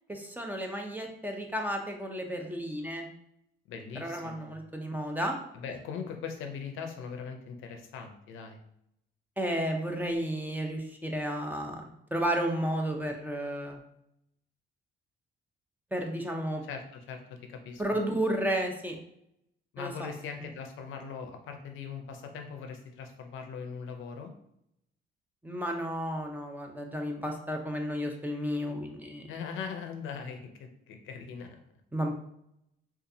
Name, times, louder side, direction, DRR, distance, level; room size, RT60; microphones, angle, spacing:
voice 1, 0.1-3.1 4.0-5.4 9.4-13.8 15.9-16.6 17.8-19.0 19.8-20.1 25.4-29.3 31.9-32.1, equal, 10° right, 2 dB, 0.6 m, -32 dB
voice 2, 3.7-4.6 5.5-8.6 16.6-17.8 19.7-24.3 29.3-31.6, left 6 dB, 85° left, 5 dB, 0.6 m, -40 dB
3.9 x 2.4 x 2.7 m, 0.77 s
cardioid pair, 90°, 20 cm